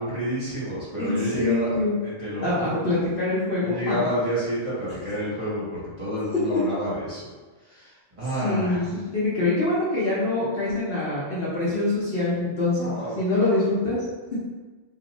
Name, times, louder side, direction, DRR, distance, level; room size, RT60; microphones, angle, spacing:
voice 1, 0.0-1.7 2.0-2.8 3.6-7.3 7.6-8.9 12.7-13.5, equal, 25° right, -10 dB, 1.2 m, -29 dB
voice 2, 1.0-1.9 2.4-4.0 6.5-6.6 8.4-8.8 9.1-14.1, left 2 dB, 50° left, -8 dB, 0.9 m, -25 dB
2.6 x 2.4 x 3.9 m, 1.3 s
omnidirectional pair, 1.4 m